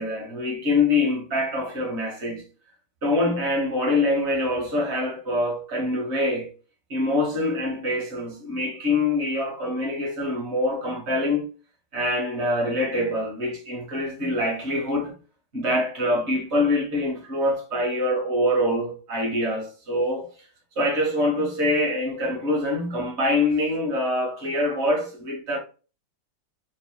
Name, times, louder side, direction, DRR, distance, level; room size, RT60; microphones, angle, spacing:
voice 1, 0.0-2.4 3.0-6.5 6.9-11.5 11.9-15.1 15.5-20.3 20.7-25.6, left 1 dB, 40° right, 1.2 m, -25 dB
4.3 x 3.3 x 2.3 m
omnidirectional pair, 2.4 m